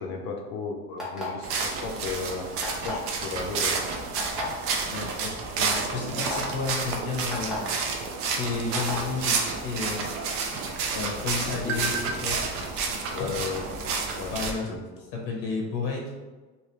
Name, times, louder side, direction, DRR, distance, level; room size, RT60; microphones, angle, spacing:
voice 1, 0.0-2.5 2.8-3.7 11.6-12.2 13.1-13.8 14.2-14.3 14.6-14.8, left 5 dB, 50° left, 2 dB, 0.6 m, -35 dB
sound 1, 1.0-1.5 2.6-3.1 4.2-4.4 5.2-5.3 5.7-5.8 6.2-6.4 7.3-7.6 8.7-9.0, left 1 dB, ahead, 0.7 m, -34 dB
sound 2, 1.4-14.5, right 4 dB, 40° right, 0.4 m, -30 dB
voice 2, 4.9-7.6 8.2-10.2 10.9-13.3 14.3-14.7 15.2-16.0, left 4 dB, 90° left, 0 dB, 1.0 m, -32 dB
sound 3, 11.5-14.8, right 4 dB, 85° right, 0.6 m, -40 dB
3.1 x 2.9 x 3.0 m, 1.3 s
cardioid pair, 170°, 36 cm